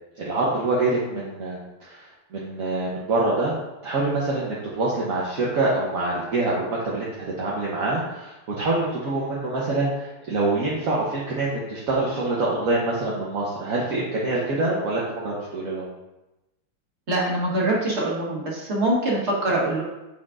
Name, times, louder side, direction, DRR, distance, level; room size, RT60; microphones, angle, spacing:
voice 1, 0.2-3.5 3.8-7.1 7.4-15.9, right 2 dB, 50° right, -6 dB, 1.1 m, -25 dB
voice 2, 17.1-19.8, right 1 dB, 35° right, -5 dB, 1.7 m, -24 dB
9.8 x 4.3 x 2.5 m, 1.0 s
omnidirectional pair, 2.3 m